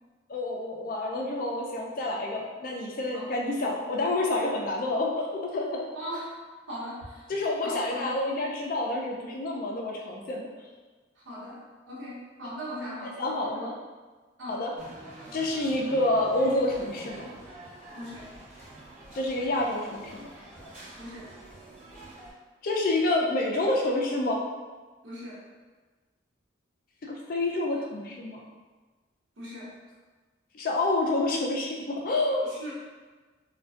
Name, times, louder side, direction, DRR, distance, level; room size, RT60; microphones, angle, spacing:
voice 1, 0.3-5.8 7.3-10.5 13.0-13.8 14.5-14.7 15.3-17.3 19.1-20.3 22.6-24.4 27.1-28.4 30.5-32.4, left 2 dB, 45° left, -1 dB, 0.3 m, -28 dB
voice 2, 5.9-6.4 6.7-7.3 7.6-8.2 11.2-11.6 11.9-13.2 13.4-13.7 14.4-14.6 17.9-18.3 21.0-21.3 25.0-25.4 29.4-29.7 32.5-32.7, equal, 75° right, -7 dB, 0.8 m, -39 dB
sound 1, 14.8-22.3, right 1 dB, 45° right, 0.8 m, -47 dB
2.4 x 2.2 x 2.3 m, 1.3 s
head